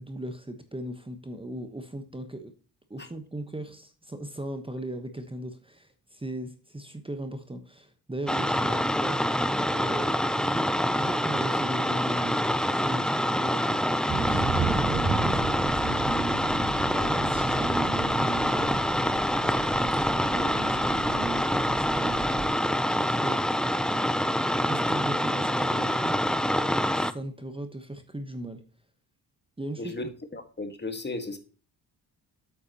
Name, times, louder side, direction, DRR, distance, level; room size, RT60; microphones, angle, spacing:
voice 1, 0.0-2.5 2.9-18.9 19.4-22.6 23.0-23.4 24.5-26.2 26.9-28.6 29.6-30.0, right 1 dB, 15° right, 1.1 m, -38 dB
sound 1, 8.3-27.1, equal, ahead, 0.6 m, -26 dB
Thunder / Rain, 14.1-22.5, right 4 dB, 55° right, 2.5 m, -34 dB
voice 2, 29.8-31.4, left 2 dB, 25° left, 1.7 m, -35 dB
8.6 x 8.0 x 3.0 m
cardioid pair, 75°, 38 cm